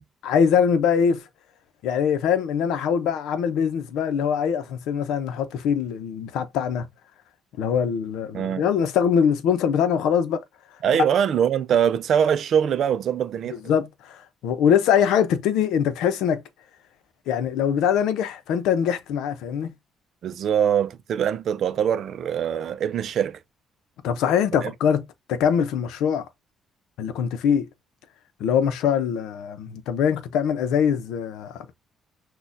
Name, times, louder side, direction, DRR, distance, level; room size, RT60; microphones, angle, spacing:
voice 1, 0.2-1.2 1.8-6.9 7.6-10.4 13.5-16.4 17.3-19.7 24.0-26.3 27.0-27.7 28.4-31.7, left 8 dB, 90° left, 0.6 m, -23 dB
voice 2, 8.3-8.7 10.8-13.6 20.2-23.4 24.6-24.7, right 8 dB, 55° right, 0.4 m, -23 dB
6.2 x 2.3 x 2.6 m
cardioid pair, 135°, 0 cm